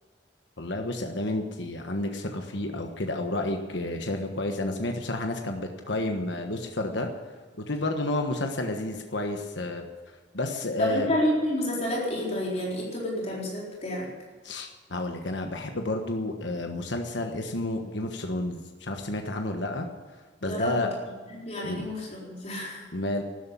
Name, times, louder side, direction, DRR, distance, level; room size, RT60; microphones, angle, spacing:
voice 1, 0.6-7.1 7.7-9.9 10.3-11.1 14.4-19.9 20.4-20.9 21.6-21.9 22.9-23.2, left 2 dB, 75° left, 4 dB, 1.4 m, -30 dB
voice 2, 10.8-14.1 20.4-20.8 21.3-22.9, equal, 40° left, -4 dB, 4.2 m, -29 dB
13.0 x 11.5 x 8.5 m, 1.5 s
head